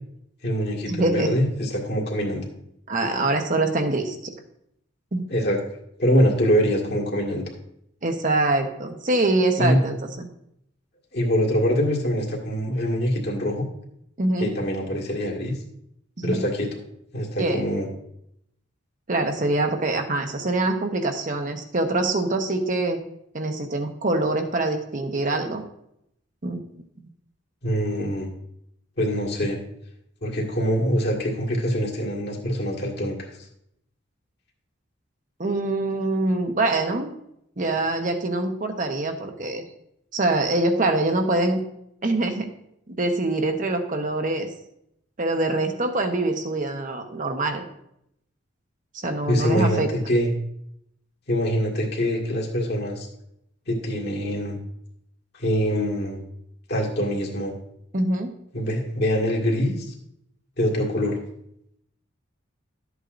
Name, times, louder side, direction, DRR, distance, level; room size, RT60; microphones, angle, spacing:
voice 1, 0.4-2.5 5.3-5.6 6.0-7.4 9.6-9.8 11.1-13.7 14.4-15.5 16.2-16.7 17.1-17.9 27.6-28.3 29.0-29.6 30.2-33.3 49.3-50.3 51.3-53.1 53.7-54.6 55.3-56.2 56.7-57.5 58.5-59.9 60.6-61.2, equal, 55° left, -2 dB, 1.9 m, -24 dB
voice 2, 1.0-1.3 2.9-4.3 5.1-5.3 8.0-10.3 14.2-14.5 16.2-16.4 17.4-17.6 19.1-23.0 23.3-25.6 26.4-26.6 35.4-37.1 37.6-39.6 40.1-41.6 42.0-42.5 42.9-44.5 45.2-47.6 48.9-49.9 57.9-58.3, right 2 dB, 40° right, 5 dB, 1.0 m, -24 dB
12.5 x 8.2 x 2.6 m, 0.76 s
head